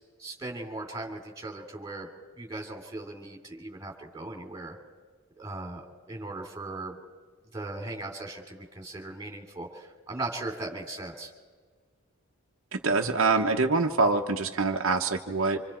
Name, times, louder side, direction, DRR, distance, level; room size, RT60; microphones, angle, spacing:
voice 1, 0.2-2.1 2.4-4.8 5.4-7.0 7.5-11.3, right 2 dB, 15° right, 1 dB, 3.0 m, -38 dB
voice 2, 12.7-15.6, right 3 dB, 60° right, 2 dB, 1.0 m, -25 dB
28.0 x 26.0 x 4.4 m, 1.5 s
head